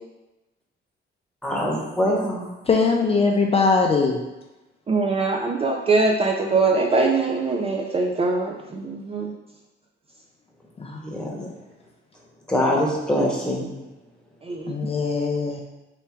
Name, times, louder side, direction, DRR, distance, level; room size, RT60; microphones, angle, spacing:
voice 1, 1.4-2.4 11.0-11.4 12.5-13.7, equal, 5° left, -3 dB, 1.2 m, -23 dB
voice 2, 2.6-4.2 10.8-11.0 11.4-11.5 14.7-15.6, left 4 dB, 30° left, 0 dB, 0.5 m, -21 dB
voice 3, 4.9-9.3 14.4-14.7, right 3 dB, 30° right, 1 dB, 0.4 m, -22 dB
3.5 x 3.1 x 4.5 m, 1.0 s
cardioid pair, 90°, 20 cm